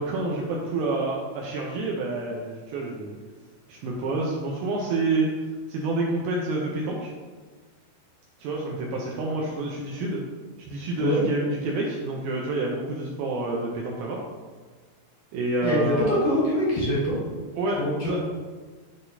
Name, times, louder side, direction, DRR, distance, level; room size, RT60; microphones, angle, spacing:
voice 1, 0.0-3.2 3.7-5.3 5.7-7.1 8.4-10.2 10.7-14.2 15.3-16.2 17.6-18.2, right 2 dB, 80° right, -2 dB, 2.2 m, -28 dB
voice 2, 15.6-17.2 17.8-18.2, equal, 60° left, -7 dB, 2.3 m, -24 dB
10.5 x 3.8 x 2.7 m, 1.4 s
omnidirectional pair, 4.9 m